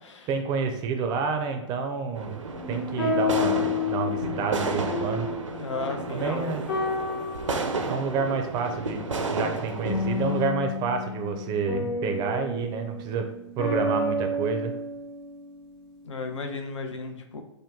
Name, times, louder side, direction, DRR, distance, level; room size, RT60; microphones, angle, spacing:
voice 1, 0.3-2.4 2.7-5.3 6.1-6.6 7.9-9.0 9.3-13.3 13.6-14.7, right 5 dB, 25° right, 6 dB, 0.4 m, -29 dB
sound 1, 2.2-10.5, right 3 dB, 90° right, 0.5 m, -32 dB
sound 2, 2.6-6.3 6.7-8.1 9.8-15.7, left 3 dB, 45° left, 1.1 m, -30 dB
voice 2, 5.6-6.5 16.0-17.4, left 4 dB, 75° left, 4 dB, 0.6 m, -34 dB
3.0 x 2.2 x 3.5 m, 0.85 s
hypercardioid pair, 115°, 16 cm